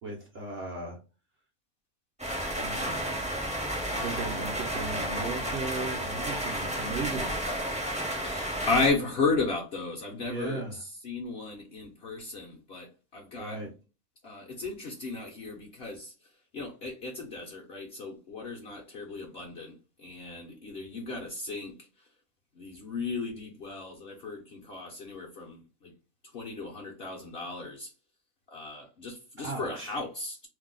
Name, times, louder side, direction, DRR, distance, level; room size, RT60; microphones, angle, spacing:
voice 1, 0.0-1.0 2.5-3.1 3.9-7.3 10.3-10.8 13.4-13.7 29.4-30.0, right 3 dB, 60° right, 0.6 m, -37 dB
sound 1, 2.2-8.9, right 1 dB, 10° right, 0.4 m, -32 dB
voice 2, 8.2-10.6 11.0-12.9 13.1-13.6 14.2-16.1 16.5-19.7 20.0-21.7 22.6-25.9 26.3-27.9 28.5-30.5, left 3 dB, 60° left, 0.7 m, -34 dB
2.6 x 2.0 x 3.7 m
omnidirectional pair, 1.6 m